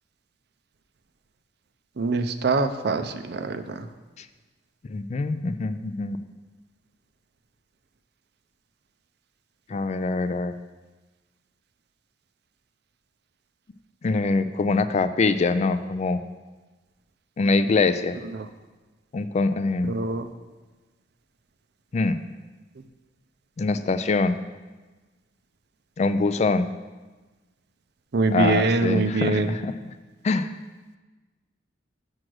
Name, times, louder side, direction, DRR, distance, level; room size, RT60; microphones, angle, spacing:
voice 1, 2.0-3.9 19.9-20.3 28.1-29.5, right 3 dB, 65° right, 9 dB, 0.5 m, -24 dB
voice 2, 4.9-6.2 9.7-10.5 14.0-16.2 17.4-18.2 19.1-20.0 21.9-22.2 23.6-24.4 26.0-26.7 28.3-29.7 30.2-30.5, left 3 dB, 40° left, 12 dB, 0.3 m, -24 dB
6.4 x 6.0 x 6.2 m, 1.2 s
head